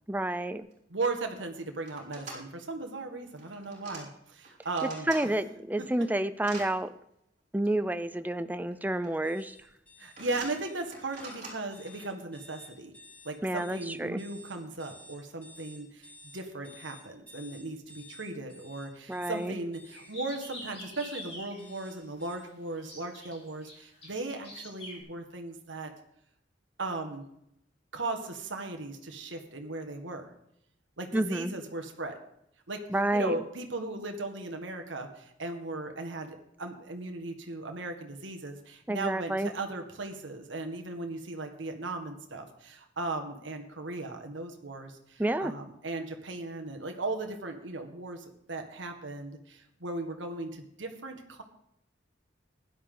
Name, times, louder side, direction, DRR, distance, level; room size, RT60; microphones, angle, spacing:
voice 1, 0.1-0.7 5.1-6.9 7.5-9.5 13.4-14.2 19.1-19.5 31.1-31.5 32.9-33.4 38.9-39.5 45.2-45.5, right 1 dB, 10° right, 12 dB, 0.4 m, -29 dB
sound 1, 0.7-0.8 1.0-1.4 1.8-2.4 3.3-4.0 4.4-5.2 5.7-6.7 7.6-7.7 8.7-9.1 9.4-9.7 10.2-11.9, right 3 dB, 40° right, 4.7 m, -45 dB
voice 2, 0.9-5.1 10.0-12.9 13.2-25.9 26.8-27.3 27.9-30.3 31.0-32.2 32.7-32.8 33.1-51.4, right 2 dB, 80° right, 5 dB, 1.8 m, -37 dB
sound 2, 9.2-22.4, left 2 dB, 10° left, 5.5 m, -54 dB
sound 3, 19.8-22.0 22.8-25.0, left 1 dB, 35° left, 5.9 m, -46 dB
16.5 x 11.0 x 3.9 m, 0.76 s
head